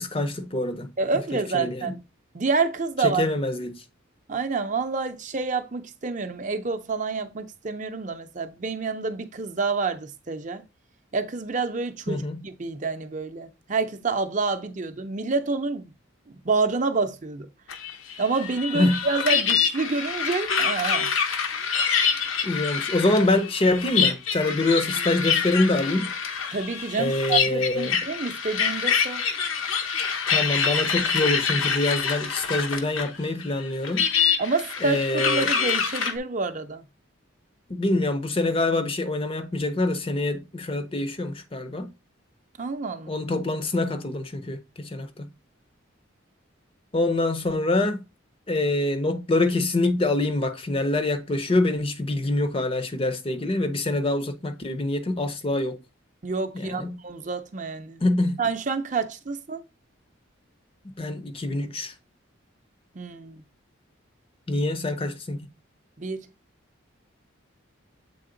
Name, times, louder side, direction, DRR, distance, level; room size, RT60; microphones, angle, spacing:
voice 1, 0.0-0.9 1.5-2.0 3.0-3.8 12.1-12.4 18.7-19.0 22.4-26.1 27.0-28.0 30.3-34.1 34.8-35.5 37.7-41.9 43.1-45.3 46.9-48.0 48.5-55.8 56.5-57.0 58.0-58.4 61.0-61.9 64.5-65.5, left 2 dB, 25° left, 0.5 m, -25 dB
voice 2, 1.0-2.0 2.3-3.3 4.3-10.6 11.1-15.9 16.4-17.5 18.2-21.1 26.5-29.2 34.4-36.8 42.6-43.2 56.2-58.0 58.4-59.6 62.9-63.4 66.0-66.3, right 4 dB, 35° right, 0.6 m, -28 dB
sound 1, 17.7-33.2 33.4-36.1, left 6 dB, 85° left, 0.9 m, -26 dB
7.7 x 3.5 x 3.8 m
head